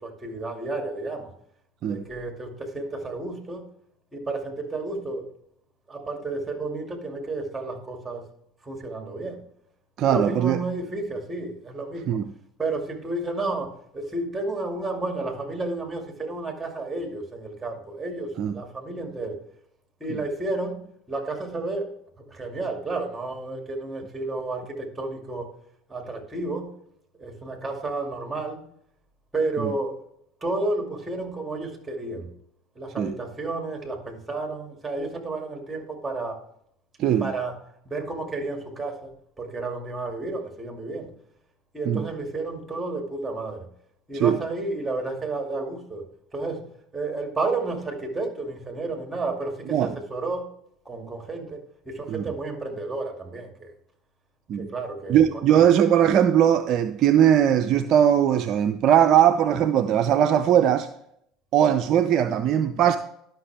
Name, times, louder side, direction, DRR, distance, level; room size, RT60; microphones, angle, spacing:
voice 1, 0.0-1.3 1.8-3.7 4.1-5.3 5.9-8.2 8.6-9.4 10.0-12.2 12.6-19.4 20.0-25.5 25.9-26.8 27.2-28.6 29.3-30.0 30.4-32.3 32.8-36.4 37.2-37.6 37.9-41.1 41.7-43.7 44.1-50.5 50.9-53.7 54.6-55.6, right 2 dB, 15° right, 2.3 m, -31 dB
voice 2, 10.0-10.6 12.1-12.2 18.4-18.6 20.1-20.2 29.6-29.7 33.0-33.1 37.0-37.3 41.9-42.1 44.1-44.4 49.7-50.0 52.1-52.3 54.5-54.7 55.1-60.9 61.5-63.0, right 9 dB, 50° right, 0.5 m, -20 dB
11.5 x 5.9 x 3.4 m
hypercardioid pair, 70°, 0 cm